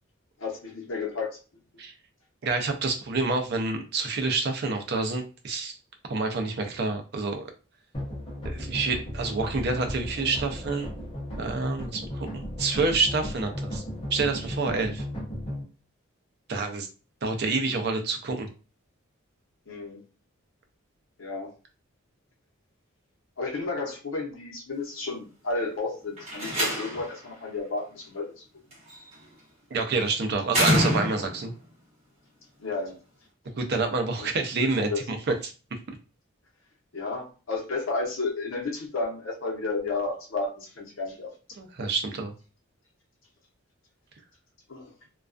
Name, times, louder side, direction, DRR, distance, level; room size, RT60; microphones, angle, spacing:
voice 1, 0.4-1.3 19.7-20.0 21.2-21.5 23.4-28.4 32.6-32.9 34.2-34.3 34.6-35.0 36.9-41.3 44.7-44.9, left 3 dB, 65° left, 0 dB, 0.7 m, -32 dB
voice 2, 2.4-5.7 6.1-7.5 8.4-10.9 11.4-13.8 14.1-15.0 16.5-16.9 17.2-18.5 29.7-31.5 33.6-35.5 41.6-42.3, right 3 dB, 50° right, 5 dB, 0.4 m, -28 dB
sound 1, 7.9-15.6, equal, 25° left, 0.7 m, -35 dB
Slam, 26.2-27.2 28.7-29.1 30.5-31.5, equal, 30° right, 1.1 m, -26 dB
2.3 x 2.2 x 2.4 m, 0.34 s
head